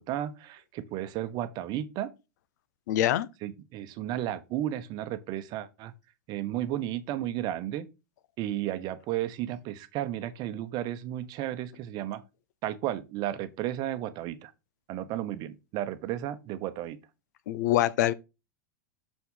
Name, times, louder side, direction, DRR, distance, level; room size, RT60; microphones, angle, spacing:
voice 1, 0.0-2.1 3.4-5.9 6.3-7.9 8.4-12.2 12.6-14.5 14.9-17.0, right 12 dB, 45° right, 0.9 m, -33 dB
voice 2, 2.9-3.3 17.5-18.1, left 13 dB, 65° left, 0.6 m, -24 dB
6.4 x 5.7 x 3.8 m
hypercardioid pair, 95°, 10 cm